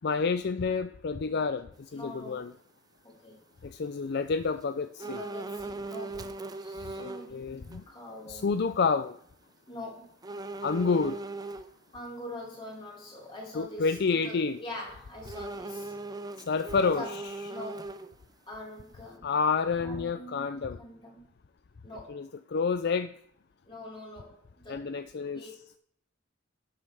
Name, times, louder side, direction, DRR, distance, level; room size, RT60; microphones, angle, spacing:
voice 1, 0.0-1.7 1.9-2.5 3.6-5.2 7.0-7.8 8.3-9.1 10.6-11.2 13.5-14.6 16.5-17.2 19.2-20.8 22.1-23.1 24.7-25.5, left 5 dB, 55° left, 0.4 m, -29 dB
voice 2, 1.9-2.5 3.0-3.4 5.0-8.5 9.7-10.1 11.9-15.9 16.9-17.1 17.5-17.9 18.5-19.3 19.8-21.3 21.8-22.2 23.6-24.9 25.3-25.5, left 1 dB, 25° left, 4.8 m, -44 dB
sound 1, 5.0-7.3 7.7-7.8 10.2-11.7 15.2-18.3 18.7-18.8, right 2 dB, 20° right, 0.6 m, -39 dB
11.5 x 8.2 x 3.5 m
head